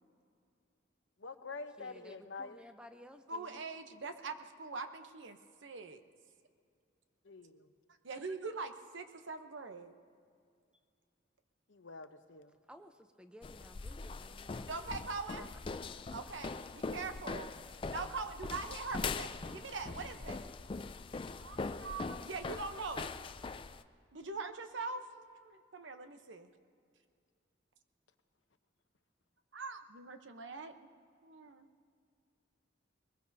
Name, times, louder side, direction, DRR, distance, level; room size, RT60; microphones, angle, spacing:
voice 1, 1.2-2.6 7.2-7.7 11.7-12.6, left 4 dB, 75° left, 9 dB, 0.8 m, -47 dB
voice 2, 1.8-3.5 12.7-12.9 13.2-14.7 15.4-15.5, equal, 5° right, 7 dB, 0.7 m, -55 dB
voice 3, 3.3-6.0 8.0-9.9 14.7-15.5 16.1-17.5 17.9-20.5 21.4-23.2 24.1-26.5 29.5-30.7 31.2-31.7, right 4 dB, 75° right, 7 dB, 0.9 m, -43 dB
sound 1, 13.4-23.8, left 4 dB, 25° left, 0.3 m, -42 dB
22.5 x 20.5 x 2.8 m, 2.3 s
head